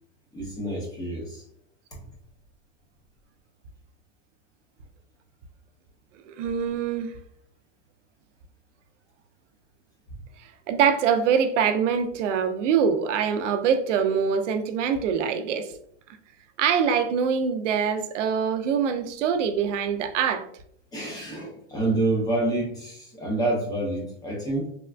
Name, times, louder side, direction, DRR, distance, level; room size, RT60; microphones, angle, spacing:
voice 1, 0.3-1.4 1.9-2.0 20.9-24.7, right 2 dB, 10° left, 0.5 m, -28 dB
voice 2, 6.3-7.1 10.7-15.7 16.6-20.4, right 7 dB, 85° right, 0.5 m, -24 dB
3.4 x 2.2 x 2.3 m
supercardioid pair, 150°, 36 cm